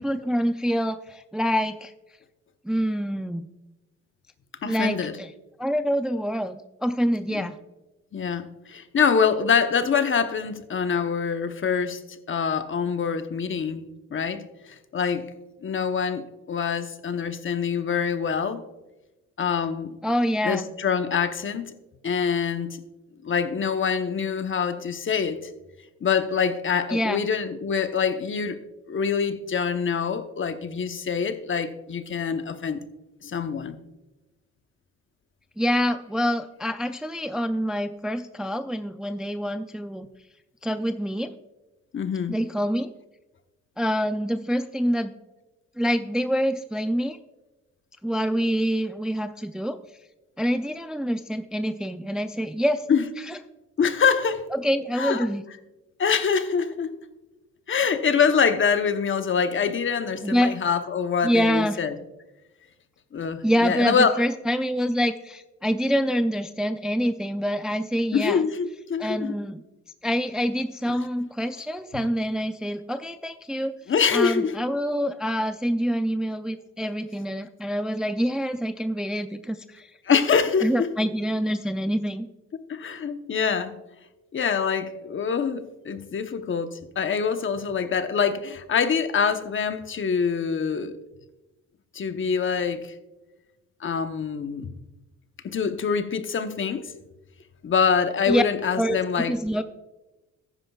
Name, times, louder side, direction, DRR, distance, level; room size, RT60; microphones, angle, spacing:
voice 1, 0.0-1.9 2.7-3.4 4.6-5.3 5.6-7.6 20.0-20.6 26.9-27.2 35.6-40.1 40.6-41.3 42.3-42.9 43.8-45.1 45.8-47.2 48.0-49.8 50.4-52.8 53.3-53.4 54.5-55.4 60.2-60.6 61.2-61.8 63.4-68.4 69.0-69.6 70.0-73.7 74.1-79.9 80.6-82.3 98.3-98.4 98.8-99.6, equal, ahead, 0.4 m, -26 dB
voice 2, 4.6-5.1 7.3-7.5 8.1-15.3 15.6-18.6 19.4-19.9 20.4-21.7 22.0-22.8 23.2-25.5 26.0-28.6 28.9-32.8 33.2-33.8 41.9-42.4 52.9-53.1 53.8-54.4 54.9-55.3 56.0-56.9 57.7-62.0 63.1-64.2 68.1-69.4 70.9-71.0 73.9-74.5 80.1-80.9 82.7-83.8 84.3-91.0 91.9-92.9 93.8-94.7 95.4-96.9 97.6-99.3, left 6 dB, 40° left, 0.9 m, -25 dB
14.0 x 10.0 x 2.4 m
cardioid pair, 90°, 30 cm